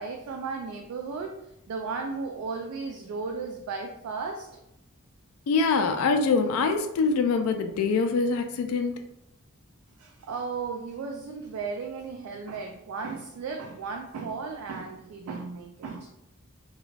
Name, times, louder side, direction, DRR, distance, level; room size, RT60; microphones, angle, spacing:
voice 1, 0.0-1.4 1.7-4.6 10.0-16.1, right 4 dB, 75° right, 3 dB, 0.3 m, -35 dB
voice 2, 5.5-8.9, left 4 dB, 70° left, 6 dB, 0.3 m, -24 dB
2.3 x 2.3 x 3.1 m, 0.84 s
head